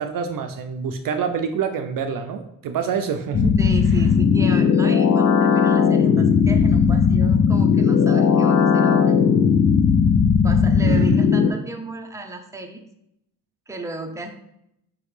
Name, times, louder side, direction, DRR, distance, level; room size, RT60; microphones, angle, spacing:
voice 1, 0.0-3.6 10.8-11.2, right 7 dB, 60° right, 7 dB, 0.5 m, -26 dB
sound 1, 3.3-11.5, left 6 dB, 45° left, 0.4 m, -17 dB
voice 2, 3.6-9.1 10.4-12.8 13.7-14.3, right 2 dB, 10° right, 3 dB, 0.7 m, -34 dB
5.0 x 3.1 x 3.2 m, 0.78 s
supercardioid pair, 55°, 38 cm